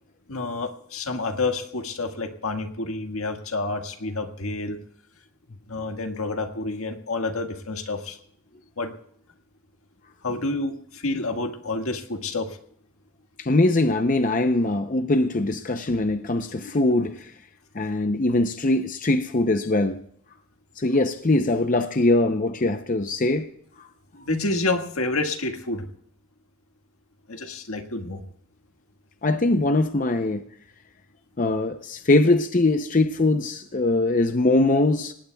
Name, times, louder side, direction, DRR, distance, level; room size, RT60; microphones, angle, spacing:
voice 1, 0.3-4.8 5.7-8.2 8.8-8.9 10.2-12.5 24.1-25.9 27.3-28.2, left 2 dB, 80° left, 1.6 m, -29 dB
voice 2, 13.4-17.3 17.7-20.0 20.8-23.5 23.8-23.9 29.2-30.4 31.4-35.1, left 2 dB, 35° left, 0.6 m, -22 dB
25.5 x 19.0 x 2.3 m
head